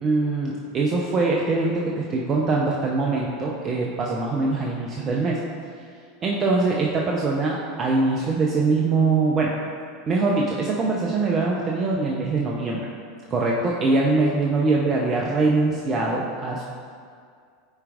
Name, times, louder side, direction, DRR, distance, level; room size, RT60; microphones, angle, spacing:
voice 1, 0.0-5.4 6.2-9.5 10.1-12.9 13.3-16.6, right 3 dB, 35° right, -2 dB, 0.6 m, -23 dB
9.6 x 4.5 x 2.5 m, 2.2 s
figure-of-eight pair, 80°, 0 cm